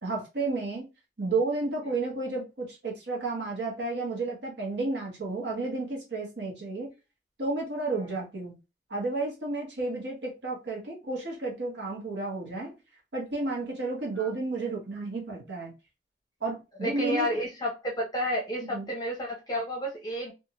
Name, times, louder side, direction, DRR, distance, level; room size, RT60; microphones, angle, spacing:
voice 1, 0.0-0.9 1.2-6.9 7.4-8.6 8.9-12.8 13.1-15.7 16.4-17.3 18.7-18.9, right 3 dB, 70° right, -2 dB, 1.2 m, -32 dB
voice 2, 16.8-20.3, equal, 20° left, -2 dB, 0.6 m, -31 dB
2.7 x 2.5 x 2.8 m, 0.27 s
head